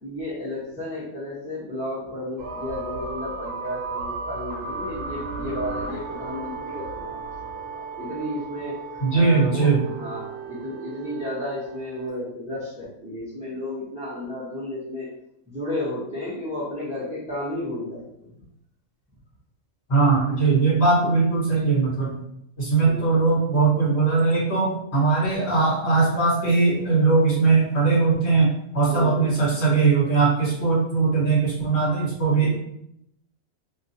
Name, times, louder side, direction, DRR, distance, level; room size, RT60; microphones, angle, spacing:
voice 1, 0.0-15.1 15.5-18.3 22.8-23.2 28.8-29.4 32.2-32.6, left 1 dB, 5° right, -9 dB, 0.7 m, -33 dB
D min round, 2.4-12.1, right 4 dB, 70° right, 1.0 m, -35 dB
voice 2, 9.0-9.8 19.9-22.2 22.6-32.5, right 4 dB, 50° left, -8 dB, 1.6 m, -20 dB
2.9 x 2.5 x 2.7 m, 0.77 s
omnidirectional pair, 1.5 m